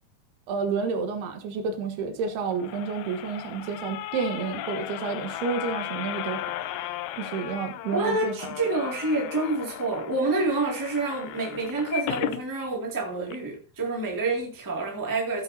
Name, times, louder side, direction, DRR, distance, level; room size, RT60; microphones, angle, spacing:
voice 1, 0.5-6.5 7.2-8.3, right 5 dB, 85° right, 3.3 m, -30 dB
sound 1, 2.3-12.4 12.9-13.0 13.3-13.4, left 13 dB, 80° left, 2.4 m, -36 dB
voice 2, 7.9-15.4, right 2 dB, 10° right, 1.1 m, -28 dB
15.0 x 8.0 x 2.7 m
omnidirectional pair, 4.5 m